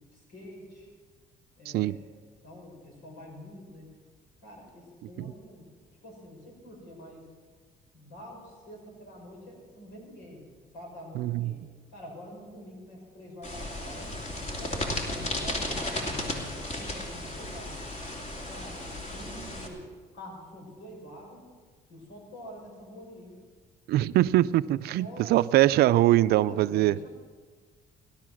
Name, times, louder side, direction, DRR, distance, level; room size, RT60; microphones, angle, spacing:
voice 1, 0.1-0.9 1.6-2.1 2.4-3.9 4.4-5.7 6.0-7.3 7.9-10.4 10.7-11.6 11.9-14.2 14.6-16.4 16.7-17.8 18.5-19.8 20.1-21.5 21.9-23.3 24.8-25.4 26.4-27.1, equal, 90° left, -1 dB, 5.7 m, -46 dB
voice 2, 11.1-11.6 23.9-26.9, right 15 dB, 70° right, 15 dB, 0.5 m, -23 dB
sound 1, 13.4-19.7, left 1 dB, 40° left, 2.8 m, -34 dB
17.0 x 12.0 x 6.2 m, 1.5 s
cardioid pair, 110°, 17 cm